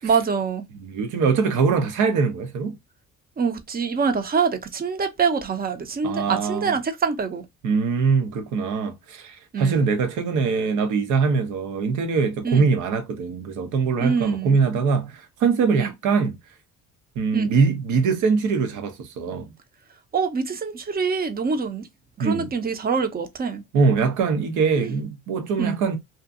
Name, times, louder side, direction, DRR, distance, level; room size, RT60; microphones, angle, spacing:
voice 1, 0.0-0.7 3.4-7.4 9.5-9.9 12.4-12.7 14.0-14.6 15.8-15.9 17.3-17.5 20.1-21.9 22.2-23.6 24.8-24.9 25.6-25.8, right 5 dB, 30° right, 0.6 m, -25 dB
voice 2, 0.8-2.8 6.0-6.7 7.6-16.3 17.2-19.5 22.2-22.5 23.7-26.0, right 5 dB, 75° right, 0.8 m, -22 dB
2.7 x 2.5 x 2.4 m
supercardioid pair, 75°, 30 cm